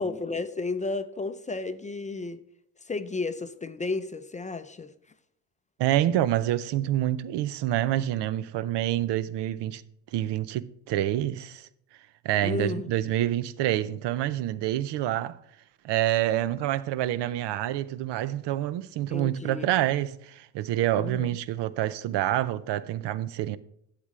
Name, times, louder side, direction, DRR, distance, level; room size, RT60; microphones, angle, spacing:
voice 1, 0.0-2.4 2.8-4.9 12.4-12.9 19.1-19.7 21.0-21.3, left 3 dB, 20° left, 0.4 m, -32 dB
voice 2, 5.8-9.8 10.1-11.7 12.2-15.4 15.8-23.6, right 13 dB, 80° right, 0.6 m, -27 dB
11.5 x 7.5 x 3.2 m
cardioid pair, 120°, 41 cm